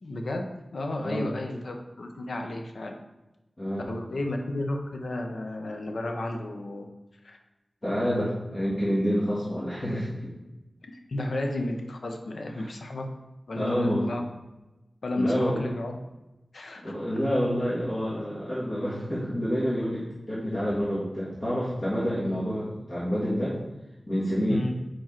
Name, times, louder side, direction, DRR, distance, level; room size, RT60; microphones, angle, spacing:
voice 1, 0.0-2.9 3.9-6.9 7.2-7.4 10.9-13.1 13.5-14.2 15.0-16.0 16.5-16.9 24.5-24.7, left 1 dB, 75° left, 3 dB, 0.7 m, -32 dB
voice 2, 1.0-1.3 3.6-3.9 7.8-10.3 12.6-12.7 13.5-14.0 15.2-15.6 16.8-23.6 24.1-24.6, equal, 40° left, -9 dB, 1.7 m, -28 dB
4.7 x 4.6 x 4.4 m, 1.0 s
wide cardioid pair, 85°, 0 cm